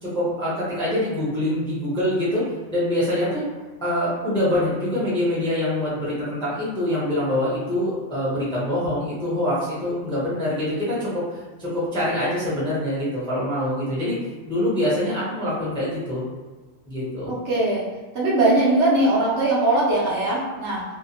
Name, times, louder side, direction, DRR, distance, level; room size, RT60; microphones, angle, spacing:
voice 1, 0.0-3.4 3.8-14.2 14.4-16.2 16.9-17.3, left 1 dB, 5° left, -8 dB, 0.6 m, -25 dB
voice 2, 17.3-17.8 18.1-20.8, right 2 dB, 65° right, -6 dB, 1.0 m, -20 dB
2.7 x 2.1 x 2.8 m, 1.3 s
omnidirectional pair, 1.3 m